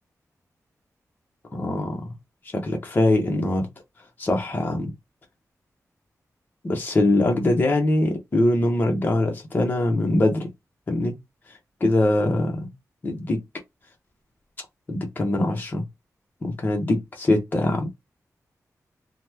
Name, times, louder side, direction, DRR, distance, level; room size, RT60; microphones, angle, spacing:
voice 1, 1.5-2.0 2.5-3.7 4.2-4.9 6.6-10.5 10.9-11.2 11.8-12.7 13.0-13.4 14.9-15.8 16.4-17.9, left 1 dB, 30° left, 0.7 m, -22 dB
2.9 x 2.1 x 3.3 m
wide cardioid pair, 165°, 6 cm